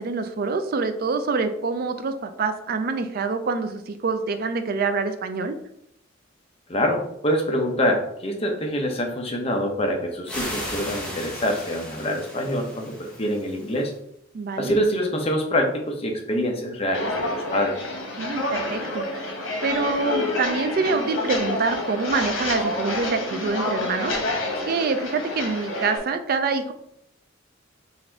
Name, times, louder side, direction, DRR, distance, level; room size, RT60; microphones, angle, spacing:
voice 1, 0.0-5.6 14.3-14.7 18.2-19.3 19.6-24.2 24.7-26.7, right 4 dB, 50° right, 9 dB, 0.4 m, -26 dB
voice 2, 6.7-13.9 14.6-17.8, equal, 30° left, 2 dB, 0.7 m, -25 dB
sound 1, 10.3-13.9, equal, 5° left, 1.0 m, -35 dB
Walk footsteps, 16.9-26.0, left 2 dB, 80° left, 1.0 m, -28 dB
4.0 x 2.6 x 4.4 m, 0.74 s
head